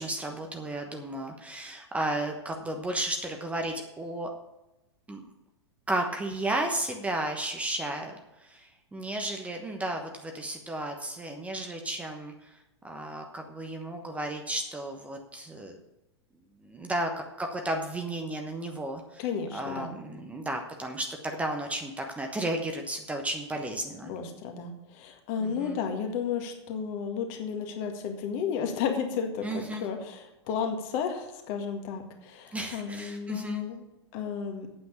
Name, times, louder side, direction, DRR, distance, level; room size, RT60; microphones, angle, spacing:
voice 1, 0.0-4.3 5.1-5.2 5.9-12.6 12.8-15.8 16.6-17.1 17.4-19.2 19.5-24.1 25.4-25.8 29.4-29.8 32.5-33.6, right 1 dB, 10° right, 3 dB, 1.1 m, -33 dB
voice 2, 19.2-19.9 24.0-33.8 34.1-34.7, left 6 dB, 40° left, 4 dB, 1.9 m, -33 dB
8.8 x 7.7 x 7.1 m, 0.95 s
figure-of-eight pair, 100°, 14 cm